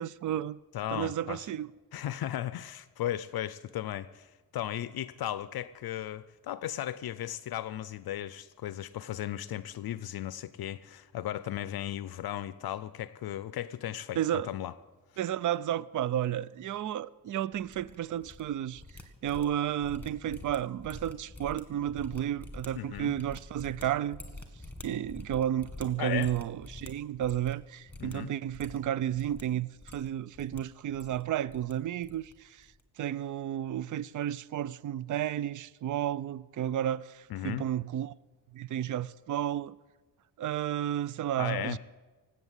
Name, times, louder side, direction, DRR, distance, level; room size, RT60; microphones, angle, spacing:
voice 1, 0.0-0.6 0.9-1.7 14.2-14.5 15.2-18.8 19.2-24.2 24.8-32.7 33.0-38.1 38.5-39.7 40.4-41.8, right 11 dB, 50° right, 0.4 m, -32 dB
voice 2, 0.7-1.5 1.9-14.7 22.8-23.1 26.0-26.3 28.0-28.3 37.3-37.6 41.4-41.8, left 12 dB, 60° left, 0.5 m, -36 dB
sound 1, 17.5-18.4 18.7-27.6 27.9-28.1 28.5-29.4 29.8-30.6 30.9-31.7 32.0-32.3 32.6-32.8, left 2 dB, 5° left, 1.7 m, -47 dB
18.5 x 8.2 x 8.1 m
cardioid pair, 135°, 42 cm